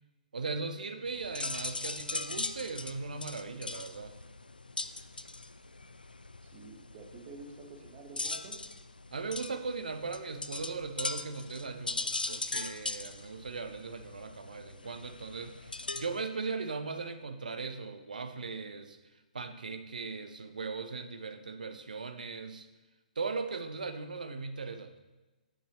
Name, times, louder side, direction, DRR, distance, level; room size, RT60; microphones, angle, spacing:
voice 1, 0.3-4.2 9.1-19.0 19.3-22.7 23.2-24.9, right 4 dB, 65° right, 8 dB, 0.6 m, -38 dB
sound 1, 1.1-16.2, left 3 dB, 80° left, 0.3 m, -40 dB
voice 2, 6.5-8.6, right 3 dB, 30° right, 1 dB, 1.2 m, -49 dB
8.0 x 6.1 x 3.1 m, 1.1 s
figure-of-eight pair, 125°, 5 cm